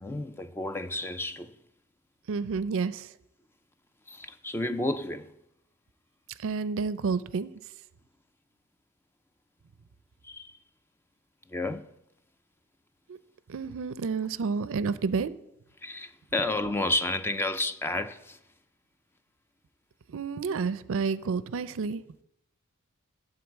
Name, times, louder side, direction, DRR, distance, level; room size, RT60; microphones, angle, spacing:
voice 1, 0.0-1.6 4.1-5.3 10.2-10.6 11.5-11.9 15.8-18.4, left 2 dB, 10° left, 0.3 m, -31 dB
voice 2, 2.3-3.1 6.4-7.5 13.1-13.2 13.5-15.3 20.1-22.0, right 5 dB, 65° right, 0.4 m, -30 dB
12.0 x 4.0 x 7.1 m
head